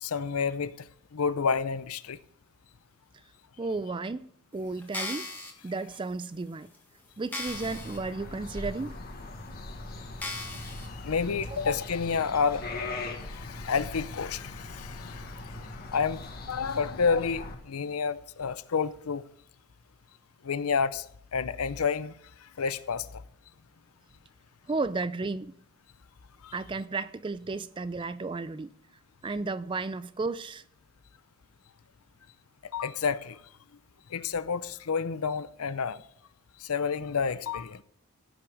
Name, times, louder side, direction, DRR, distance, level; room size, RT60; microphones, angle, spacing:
voice 1, 0.0-0.7 1.1-2.2 11.0-12.7 13.2-15.3 15.9-16.2 16.5-19.2 20.4-21.0 21.3-22.1 22.6-23.0 26.4-26.5 32.7-33.4 34.1-36.0 36.6-37.8, left 5 dB, 85° left, 0.6 m, -29 dB
voice 2, 3.6-5.3 5.6-6.7 7.2-8.9 11.5-11.6 24.7-25.5 26.5-28.7 29.2-30.6, right 3 dB, 20° right, 0.3 m, -33 dB
sound 1, 4.8-5.5 6.2-6.3 6.7-6.8 7.3-8.0 8.4-8.5 9.3-9.4 10.2-10.9 11.4-11.5, left 2 dB, 10° left, 1.6 m, -37 dB
sound 2, 7.5-17.6, left 2 dB, 45° left, 1.4 m, -40 dB
15.5 x 5.9 x 5.2 m
head